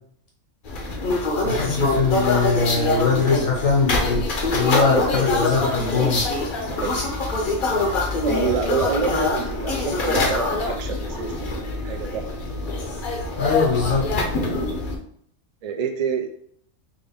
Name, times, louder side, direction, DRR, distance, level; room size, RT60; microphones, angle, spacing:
sound 1, 0.6-15.0, left 2 dB, 50° left, 0.7 m, -24 dB
voice 1, 1.4-4.3 4.5-6.2 13.4-14.1, left 4 dB, 85° left, -3 dB, 1.7 m, -21 dB
voice 2, 6.8-7.1 8.2-12.3 15.6-16.3, right 5 dB, 75° right, 4 dB, 0.3 m, -27 dB
3.6 x 2.5 x 3.5 m, 0.64 s
omnidirectional pair, 1.3 m